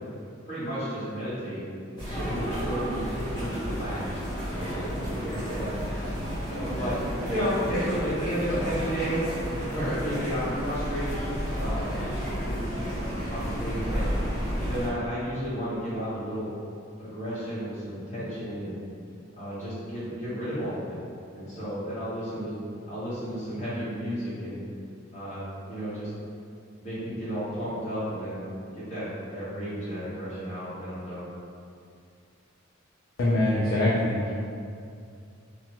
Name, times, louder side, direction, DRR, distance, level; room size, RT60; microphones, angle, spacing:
voice 1, 0.4-1.6 1.9-4.0 4.5-4.8 5.2-5.7 6.4-7.0 7.3-11.2 11.5-14.1 14.6-16.5 17.0-18.8 19.3-21.0 21.3-22.5 22.9-24.6 25.1-26.1 26.8-28.4 28.7-31.3, equal, 35° left, -12 dB, 1.1 m, -33 dB
sound 1, 2.0-14.9, equal, 20° left, 1.3 m, -31 dB
voice 2, 33.2-34.3, left 1 dB, 65° left, -6 dB, 0.4 m, -23 dB
3.2 x 2.0 x 2.9 m, 2.4 s
head